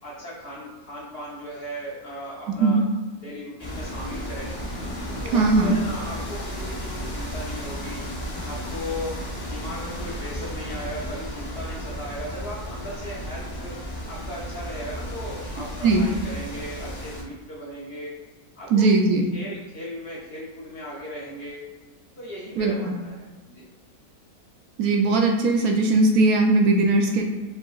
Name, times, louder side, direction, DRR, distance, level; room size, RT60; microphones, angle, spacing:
voice 1, 0.0-2.8 3.2-4.5 5.1-8.0 8.4-9.1 9.4-13.7 14.1-18.1 18.6-18.8 19.3-21.6 22.2-23.7, equal, 50° left, -5 dB, 0.8 m, -37 dB
sound 1, 3.6-17.2, equal, 35° left, 0.3 m, -34 dB
voice 2, 5.3-5.8 15.8-16.1 18.7-19.2 22.6-22.7 24.8-27.2, right 3 dB, 70° right, 2 dB, 0.9 m, -19 dB
4.6 x 3.8 x 2.4 m, 1.2 s
omnidirectional pair, 1.7 m